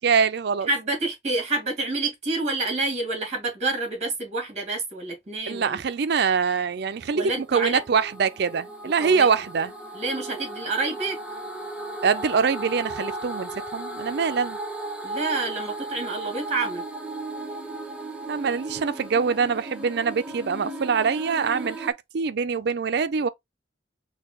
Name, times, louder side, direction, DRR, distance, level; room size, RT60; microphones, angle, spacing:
voice 1, 0.0-0.7 5.5-9.7 12.0-14.6 18.3-23.3, right 5 dB, 65° right, 0.4 m, -24 dB
voice 2, 0.7-5.8 7.1-7.8 9.0-9.3 9.9-11.2 15.0-16.8, right 3 dB, 40° right, 2.1 m, -28 dB
sound 1, 6.8-21.9, right 2 dB, 5° right, 0.8 m, -36 dB
4.7 x 2.3 x 3.7 m
head